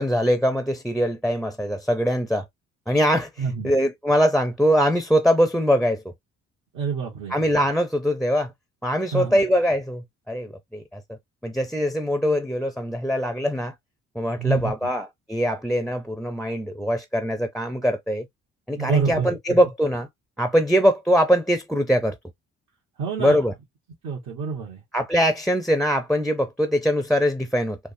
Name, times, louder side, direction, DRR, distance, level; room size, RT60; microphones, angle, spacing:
voice 1, 0.0-2.5 2.9-3.3 3.6-6.1 7.3-8.5 8.8-11.0 11.4-13.7 14.1-18.3 18.7-20.1 20.4-22.2 23.2-23.5 24.9-27.8, equal, ahead, 0.4 m, -22 dB
voice 2, 3.4-3.8 6.7-7.3 9.1-9.4 14.4-14.7 18.7-19.3 23.0-23.4 24.0-24.8, right 5 dB, 80° right, 1.2 m, -27 dB
3.4 x 2.0 x 2.5 m
cardioid pair, 90°, 30 cm